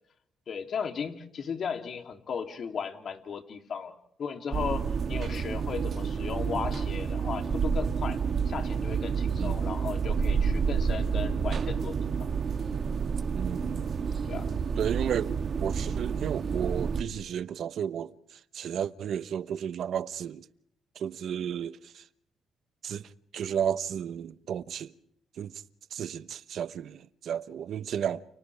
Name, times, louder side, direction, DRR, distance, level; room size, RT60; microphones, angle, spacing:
voice 1, 0.5-8.2 8.4-11.9 12.2-12.3 13.2-13.3 14.2-14.5, left 6 dB, 55° left, 3.1 m, -36 dB
sound 1, 4.5-17.0, right 6 dB, 50° right, 1.9 m, -29 dB
voice 2, 9.4-9.7 13.4-13.9 14.8-20.5 20.9-22.0 22.8-23.0 23.3-24.9 25.4-25.6 25.9-28.2, right 9 dB, 65° right, 1.0 m, -33 dB
30.0 x 30.0 x 3.5 m
cardioid pair, 90°, 0 cm